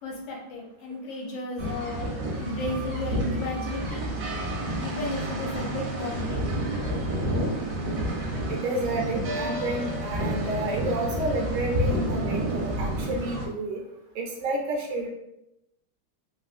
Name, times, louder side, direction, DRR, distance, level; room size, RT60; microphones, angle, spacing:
voice 1, 0.0-2.1 2.4-4.1 4.8-6.5, left 1 dB, 75° left, -2 dB, 1.4 m, -34 dB
sound 1, 1.6-13.5, right 1 dB, 65° right, 1.0 m, -30 dB
voice 2, 1.8-2.2 8.5-13.8 14.1-15.1, right 2 dB, 80° right, 1 dB, 1.4 m, -30 dB
3.4 x 2.4 x 2.4 m, 0.85 s
omnidirectional pair, 2.2 m